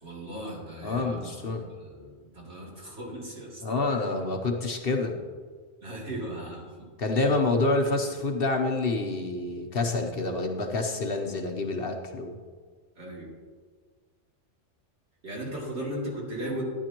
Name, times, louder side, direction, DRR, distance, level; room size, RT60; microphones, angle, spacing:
voice 1, 0.0-3.6 3.9-4.1 5.8-6.9 7.9-8.0 13.0-13.3 15.2-16.6, right 1 dB, 65° right, -5 dB, 3.2 m, -37 dB
voice 2, 0.8-1.7 3.6-5.2 7.0-12.4, left 3 dB, 55° left, 3 dB, 1.0 m, -27 dB
13.0 x 10.5 x 3.0 m, 1.6 s
omnidirectional pair, 1.3 m